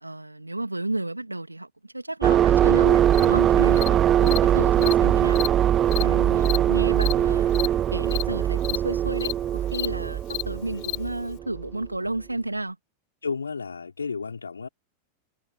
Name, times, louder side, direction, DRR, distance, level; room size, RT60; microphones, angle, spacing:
voice 1, 0.0-5.4 6.0-12.8, right 2 dB, 85° right, 2.7 m, -32 dB
sound 1, 2.2-11.7, right 10 dB, 30° right, 1.9 m, -21 dB
Cricket, 3.1-3.3 3.8-3.9 4.3-4.4 4.8-4.9 5.3-5.5 5.9-6.0 6.4-6.6 7.0-7.1 7.5-7.7 8.1-8.2 8.6-8.8 9.2-9.3 9.7-9.9 10.3-10.4 10.8-11.0, left 40 dB or more, 45° left, 6.0 m, -30 dB
voice 2, 5.9-6.3 13.2-14.7, left 5 dB, 75° left, 4.5 m, -33 dB
figure-of-eight pair, 90°, 0 cm